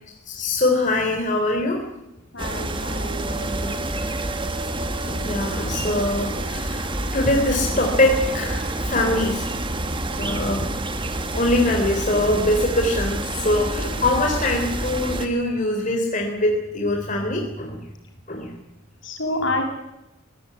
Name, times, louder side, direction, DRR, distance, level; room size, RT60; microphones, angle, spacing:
voice 1, 0.3-1.8 2.8-2.9 4.5-4.7 5.0-9.5 10.0-10.7 11.3-17.8 18.3-18.6, left 1 dB, 40° left, 2 dB, 3.9 m, -23 dB
voice 2, 2.3-3.8 19.0-19.6, left 1 dB, 65° left, 4 dB, 7.4 m, -28 dB
sound 1, 2.4-15.3, right 1 dB, 25° right, 2.4 m, -28 dB
24.5 x 18.5 x 9.8 m, 0.94 s
head